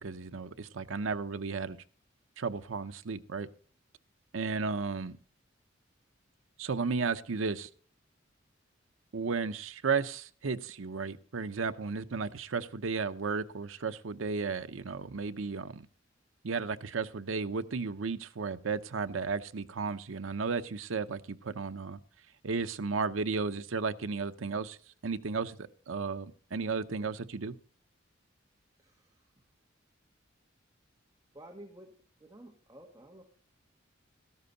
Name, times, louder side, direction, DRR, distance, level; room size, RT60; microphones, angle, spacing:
voice 1, 0.0-1.8 2.4-3.5 4.3-5.1 6.6-7.7 9.1-15.9 16.4-22.0 22.4-24.8 25.0-27.6, right 4 dB, 90° right, 10 dB, 0.7 m, -34 dB
voice 2, 28.8-29.3 31.3-31.9 32.2-33.2, right 1 dB, 20° right, 2 dB, 1.4 m, -52 dB
13.0 x 12.0 x 4.0 m, 0.43 s
head